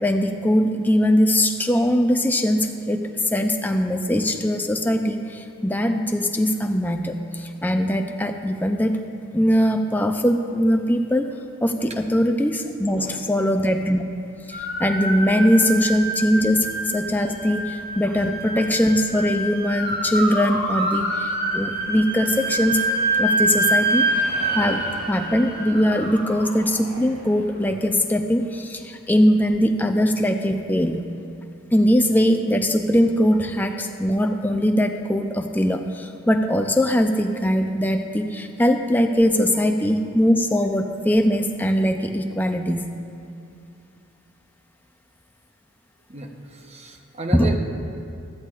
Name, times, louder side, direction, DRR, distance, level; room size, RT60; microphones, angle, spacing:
voice 1, 0.0-9.0 9.3-11.3 11.6-14.0 14.5-22.9 23.2-24.1 24.5-31.0 31.7-42.9 47.3-47.6, equal, 10° left, 5 dB, 0.4 m, -21 dB
sound 1, 14.5-27.6, right 2 dB, 45° right, 1.6 m, -26 dB
voice 2, 46.1-47.6, right 2 dB, 30° right, 3 dB, 0.8 m, -33 dB
15.0 x 13.0 x 2.4 m, 2.5 s
head